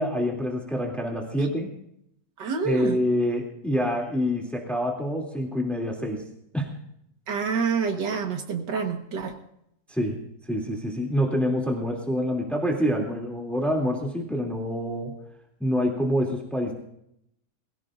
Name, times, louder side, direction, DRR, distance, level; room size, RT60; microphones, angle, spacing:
voice 1, 0.0-1.7 2.6-6.2 6.5-6.7 9.9-10.2 10.5-15.1 15.6-16.7, equal, ahead, 0 dB, 2.7 m, -26 dB
voice 2, 2.4-3.0 7.3-9.3, right 5 dB, 85° right, 4 dB, 2.1 m, -27 dB
22.0 x 16.5 x 2.6 m, 0.75 s
omnidirectional pair, 1.8 m